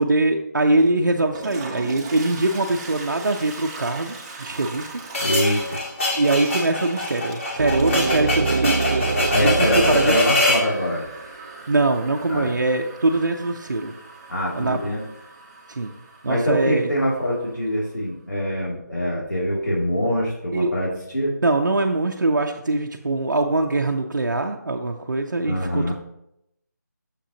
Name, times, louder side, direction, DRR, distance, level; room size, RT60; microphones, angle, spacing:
voice 1, 0.0-5.0 6.1-9.1 9.4-10.1 11.7-13.9 14.6-14.8 15.7-15.9 16.2-16.9 20.5-20.7 21.4-25.9, right 2 dB, 80° right, 2 dB, 0.7 m, -22 dB
Toilet flush, 1.2-17.9, right 4 dB, 20° right, 1.0 m, -40 dB
sound 1, 5.1-10.7, left 2 dB, 45° left, 2.4 m, -24 dB
voice 2, 5.2-5.8 9.3-11.1 12.3-12.5 14.3-15.0 16.3-21.4 25.4-25.9, equal, 90° left, -5 dB, 2.5 m, -24 dB
sound 2, 7.6-11.5, right 4 dB, 45° right, 0.5 m, -25 dB
7.4 x 6.8 x 2.8 m, 0.80 s
figure-of-eight pair, 160°, 10 cm